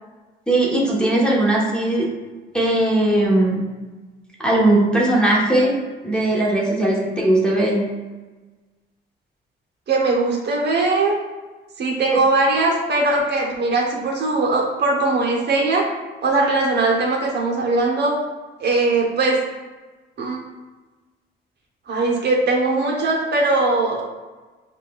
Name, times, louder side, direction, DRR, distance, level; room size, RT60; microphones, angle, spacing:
voice 1, 0.5-2.1 2.5-3.7 4.4-5.8 6.0-7.9 12.1-12.2, right 1 dB, 5° left, -4 dB, 1.0 m, -18 dB
voice 2, 9.9-11.1 11.8-15.9 16.2-18.2 18.6-19.4 20.2-20.4 21.9-24.0, right 3 dB, 60° right, -2 dB, 0.9 m, -20 dB
5.8 x 2.4 x 2.3 m, 1.3 s
cardioid pair, 90°, 20 cm